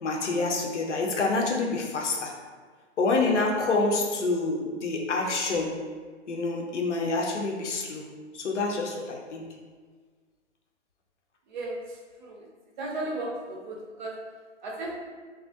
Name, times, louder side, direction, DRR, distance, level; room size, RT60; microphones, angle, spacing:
voice 1, 0.0-2.4 3.0-5.8 6.3-8.1 8.3-9.5, left 3 dB, 75° left, 0 dB, 0.6 m, -27 dB
voice 2, 11.5-12.5 12.8-14.1 14.6-15.0, right 2 dB, 40° right, -3 dB, 0.6 m, -35 dB
2.2 x 2.1 x 2.7 m, 1.5 s
figure-of-eight pair, 130°, 36 cm